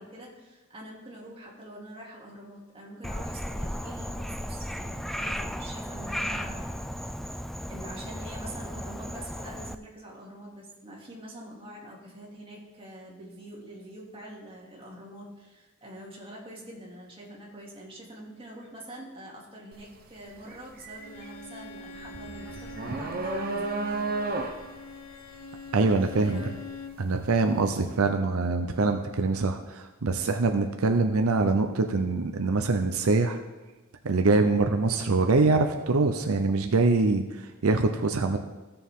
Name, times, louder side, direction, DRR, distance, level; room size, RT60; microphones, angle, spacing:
voice 1, 0.0-6.8 7.3-24.2 26.0-26.5, right 1 dB, 25° right, -4 dB, 2.6 m, -45 dB
Frog, 3.0-9.7, equal, ahead, 0.3 m, -35 dB
sound 1, 19.7-20.0 20.3-27.4, right 3 dB, 45° right, 1.0 m, -33 dB
Bowed string instrument, 21.0-27.0, left 3 dB, 90° left, 0.7 m, -43 dB
voice 2, 25.7-26.4 27.0-33.4 34.0-38.4, right 3 dB, 85° right, 5 dB, 0.7 m, -24 dB
15.5 x 6.8 x 3.7 m, 1.2 s
head